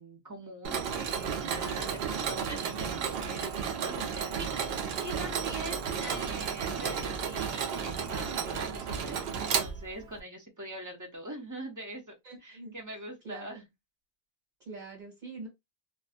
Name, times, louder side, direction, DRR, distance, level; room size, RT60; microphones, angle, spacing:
voice 1, 0.0-12.1 12.4-13.6, right 1 dB, 20° right, 0.5 m, -43 dB
Mechanisms, 0.6-10.2, right 6 dB, 70° right, 0.8 m, -33 dB
voice 2, 12.2-12.7 13.2-13.6 14.6-15.5, right 3 dB, 45° right, 1.6 m, -44 dB
2.5 x 2.3 x 2.4 m
omnidirectional pair, 1.1 m